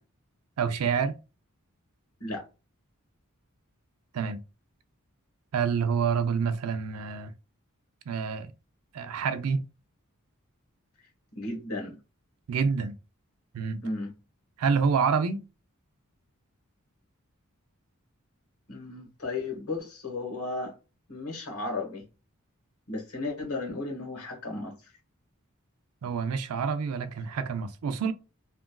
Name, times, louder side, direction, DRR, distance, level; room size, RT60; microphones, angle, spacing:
voice 1, 0.6-1.2 4.1-4.4 5.5-7.3 8.1-8.5 8.9-9.7 12.5-13.0 13.5-13.8 14.6-15.4 26.0-28.1, right 6 dB, 90° right, 0.4 m, -27 dB
voice 2, 11.3-12.0 13.8-14.1 18.7-20.7 21.1-22.0 22.9-24.9, left 2 dB, 85° left, 1.2 m, -34 dB
2.9 x 2.4 x 2.2 m
head